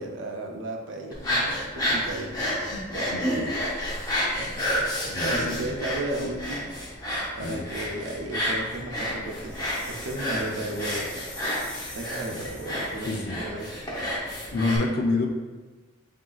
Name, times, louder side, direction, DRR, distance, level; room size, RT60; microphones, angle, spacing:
voice 1, 0.0-2.5 2.9-3.2 4.4-6.7 7.4-11.2 11.9-13.8, right 1 dB, 80° right, 2 dB, 0.6 m, -35 dB
sound 1, 1.1-14.8, equal, 20° left, 0.9 m, -30 dB
voice 2, 3.1-3.5 5.0-5.7 7.4-7.6 13.0-13.4 14.5-15.3, left 3 dB, 60° left, 2 dB, 0.6 m, -28 dB
sound 2, 9.4-13.1, left 1 dB, 5° left, 0.5 m, -44 dB
6.1 x 2.8 x 2.4 m, 1.3 s
head